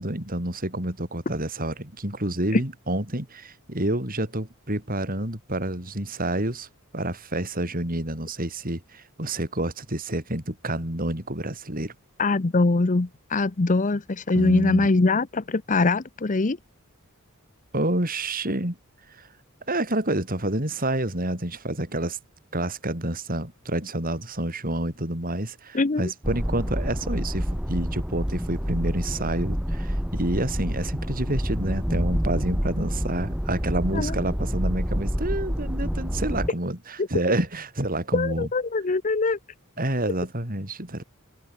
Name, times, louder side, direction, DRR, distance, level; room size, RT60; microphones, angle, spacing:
voice 1, 0.0-6.7 6.9-11.9 14.3-14.9 17.7-18.8 19.1-19.3 19.7-22.2 22.5-38.5 39.8-41.0, right 1 dB, 40° right, 5.4 m, -28 dB
voice 2, 12.2-16.6 25.7-26.1 33.9-34.2 37.0-37.1 38.1-39.4, left 3 dB, 35° left, 0.7 m, -23 dB
sound 1, 26.2-36.5, equal, 5° right, 1.3 m, -28 dB
head